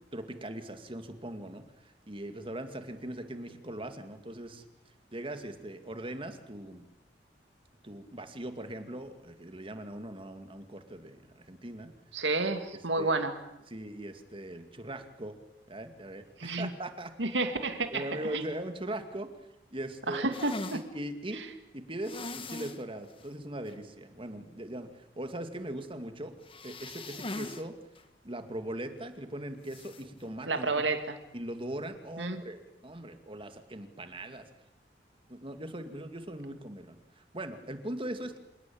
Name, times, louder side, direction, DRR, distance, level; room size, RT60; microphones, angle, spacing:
voice 1, 0.1-4.6 5.1-6.9 7.8-11.9 12.7-13.1 13.7-15.4 15.7-17.1 17.9-19.3 19.7-20.3 20.7-21.5 21.7-27.8 28.2-30.9 31.3-34.5 35.3-38.4, right 1 dB, 30° right, 8 dB, 2.3 m, -40 dB
voice 2, 12.1-13.3 16.4-16.7 17.2-18.4 20.1-20.5 21.4-21.5 30.5-31.2 32.2-32.4, right 3 dB, 90° right, 7 dB, 2.5 m, -30 dB
sound 1, 20.3-20.8 22.0-22.8 23.2-23.3 23.7-23.8 26.4-27.6 28.0-28.1 29.7-30.0, left 2 dB, 30° left, 1.6 m, -40 dB
27.5 x 18.0 x 8.8 m, 0.91 s
head